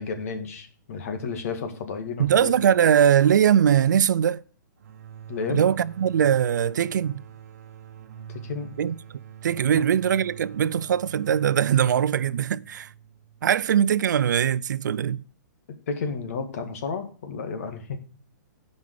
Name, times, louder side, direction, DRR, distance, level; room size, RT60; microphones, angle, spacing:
voice 1, 0.0-2.5 5.3-5.6 8.3-8.8 9.7-9.9 15.9-18.0, left 5 dB, 50° left, 2.0 m, -32 dB
voice 2, 2.2-4.4 5.5-7.2 8.8-8.9 9.4-12.9 13.4-15.2, right 9 dB, 70° right, 0.5 m, -21 dB
sound 1, 4.8-14.3, right 9 dB, 55° right, 1.1 m, -45 dB
12.0 x 5.4 x 6.6 m
hypercardioid pair, 165°, 10 cm